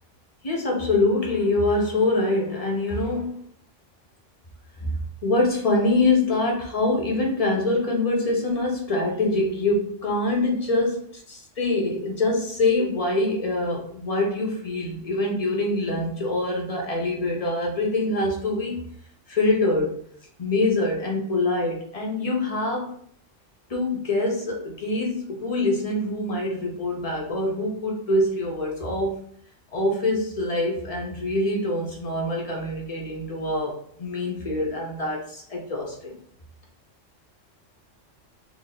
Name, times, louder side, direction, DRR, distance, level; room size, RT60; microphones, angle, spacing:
voice 1, 0.4-3.4 4.8-11.0 11.3-18.9 19.3-20.0 20.4-22.9 23.7-29.2 29.7-36.2, left 2 dB, 35° left, -1 dB, 0.9 m, -24 dB
3.0 x 2.7 x 4.0 m, 0.62 s
omnidirectional pair, 1.3 m